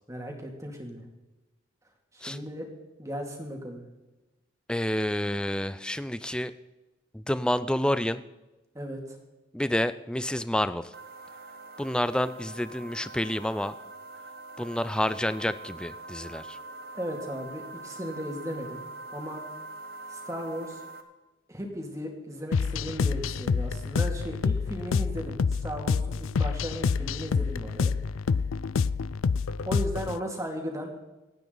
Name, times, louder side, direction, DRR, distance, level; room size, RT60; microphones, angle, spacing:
voice 1, 0.1-1.0 2.1-2.6 3.0-3.8 8.7-9.2 16.9-18.8 19.1-19.4 20.1-20.8 21.5-27.9 29.6-30.9, equal, 15° right, 1 dB, 2.4 m, -36 dB
voice 2, 4.7-6.5 7.1-8.2 9.5-10.9 11.8-13.7 14.6-16.6, left 1 dB, 5° left, 14 dB, 0.4 m, -29 dB
sound 1, 10.9-21.0, right 2 dB, 50° right, 1.5 m, -44 dB
sound 2, 22.5-30.2, left 5 dB, 85° left, 0.4 m, -27 dB
27.0 x 9.2 x 4.0 m, 1.1 s
head